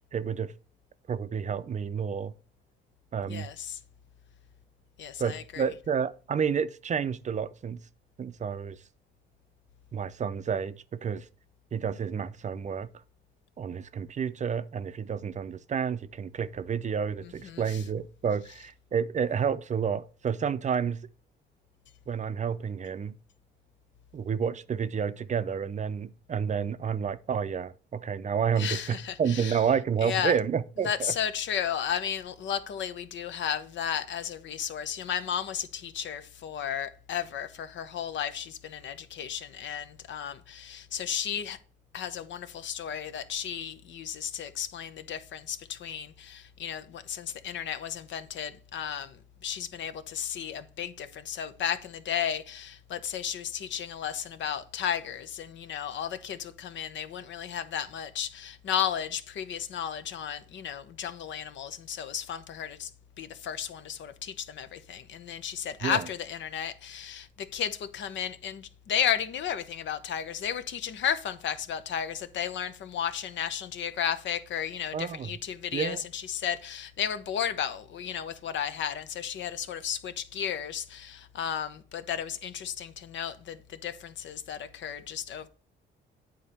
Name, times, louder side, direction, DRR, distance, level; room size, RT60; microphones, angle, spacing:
voice 1, 0.1-0.5 1.1-2.3 3.1-3.5 5.2-7.8 8.2-8.8 9.9-11.2 11.7-12.9 13.6-21.0 22.1-23.2 24.1-31.1 65.8-66.0 74.9-75.3 75.7-76.0, right 7 dB, 35° right, 0.5 m, -30 dB
voice 2, 3.3-3.8 5.0-5.7 17.2-17.8 28.6-29.6 30.0-30.4 30.8-41.6 41.9-62.9 63.2-85.5, left 9 dB, 70° left, 0.8 m, -34 dB
8.7 x 3.9 x 4.2 m
cardioid pair, 90°, 20 cm